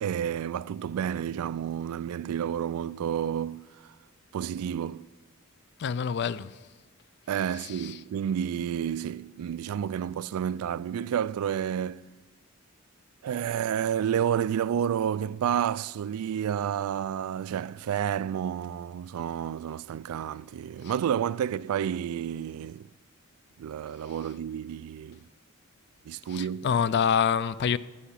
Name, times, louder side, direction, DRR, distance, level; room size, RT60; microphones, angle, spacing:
voice 1, 0.0-3.9 4.3-5.1 7.3-12.0 13.2-22.9 23.6-25.2 26.1-26.7, right 9 dB, 85° right, 0.3 m, -30 dB
voice 2, 5.8-6.6 7.8-7.9 26.3-27.8, left 7 dB, 50° left, 0.4 m, -26 dB
14.0 x 5.6 x 8.4 m
head